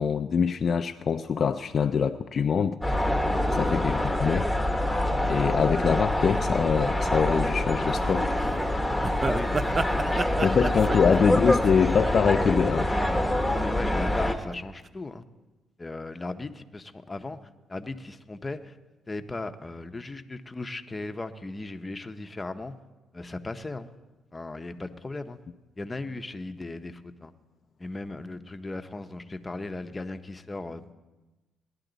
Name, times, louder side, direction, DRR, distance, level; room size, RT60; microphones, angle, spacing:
voice 1, 0.0-2.8 3.5-4.5 5.3-8.3 10.4-12.9, left 6 dB, 50° left, 8 dB, 0.4 m, -24 dB
sound 1, 2.8-14.3, left 1 dB, ahead, 1.2 m, -26 dB
sound 2, 7.9-8.1 8.4-8.5 9.0-12.6 13.0-13.4 14.0-14.5 14.8-14.9, right 3 dB, 35° right, 0.6 m, -31 dB
voice 2, 9.2-10.3 10.6-11.4 13.5-15.2 15.8-17.4 17.7-18.8 19.1-22.8 23.1-23.9 24.3-25.4 25.8-27.3 27.8-30.9, left 2 dB, 20° left, 8 dB, 0.8 m, -37 dB
18.0 x 11.0 x 4.0 m, 1.1 s
cardioid pair, 90°, 0 cm